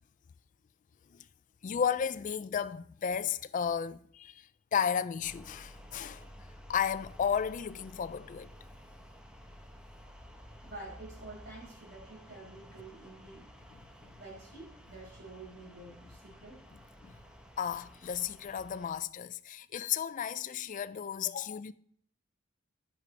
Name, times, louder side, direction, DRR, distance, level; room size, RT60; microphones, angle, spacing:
voice 1, 1.6-6.3 6.7-8.5 13.7-14.1 17.0-17.2 17.6-21.7, left 7 dB, 40° left, 0.3 m, -34 dB
sound 1, 5.2-18.9, equal, 5° right, 0.9 m, -53 dB
voice 2, 10.6-13.4 14.1-16.6, right 2 dB, 55° right, 5.1 m, -49 dB
11.0 x 9.6 x 3.3 m
head